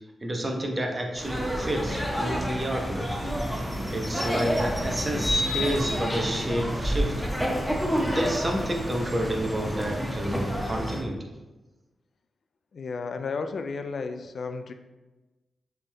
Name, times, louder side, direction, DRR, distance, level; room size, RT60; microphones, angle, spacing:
voice 1, 0.2-3.1 3.9-7.3 8.1-11.3, right 1 dB, 30° right, 2 dB, 0.9 m, -30 dB
sound 1, 1.2-11.0, equal, ahead, 1.1 m, -29 dB
sound 2, 3.5-3.6 5.2-6.6, left 2 dB, 35° left, 1.1 m, -30 dB
voice 2, 12.7-14.7, left 4 dB, 65° left, 7 dB, 0.3 m, -33 dB
6.8 x 3.5 x 2.2 m, 1.1 s
supercardioid pair, 45°, 0 cm